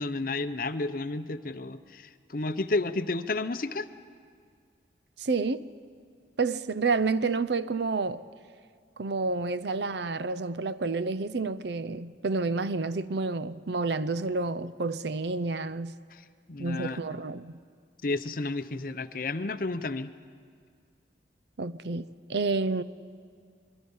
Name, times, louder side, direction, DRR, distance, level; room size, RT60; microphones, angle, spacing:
voice 1, 0.0-3.9 16.5-17.0 18.0-20.1, left 3 dB, 50° left, 0.7 m, -31 dB
voice 2, 5.2-5.6 6.4-8.2 9.0-15.9 16.6-17.6 21.6-22.8, right 3 dB, 70° right, 0.6 m, -29 dB
25.0 x 23.0 x 5.5 m
head